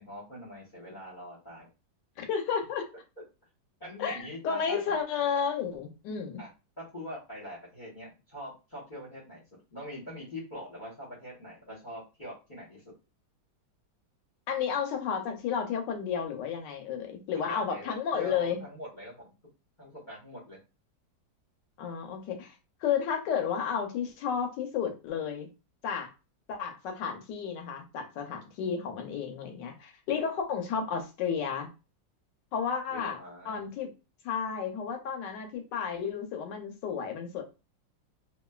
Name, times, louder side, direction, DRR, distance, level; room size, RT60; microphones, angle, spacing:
voice 1, 0.0-1.7 3.8-5.0 6.4-6.5 6.8-9.4 9.7-12.9 17.4-19.3 19.8-20.6 32.9-33.7, left 1 dB, 35° left, 0.9 m, -43 dB
voice 2, 2.2-2.8 4.0-6.4 14.5-18.6 21.8-22.5 22.8-25.5 25.8-26.1 26.5-31.7 32.5-33.2 33.5-33.9 34.2-37.4, left 7 dB, 75° left, 1.3 m, -32 dB
3.1 x 2.3 x 2.3 m
omnidirectional pair, 2.0 m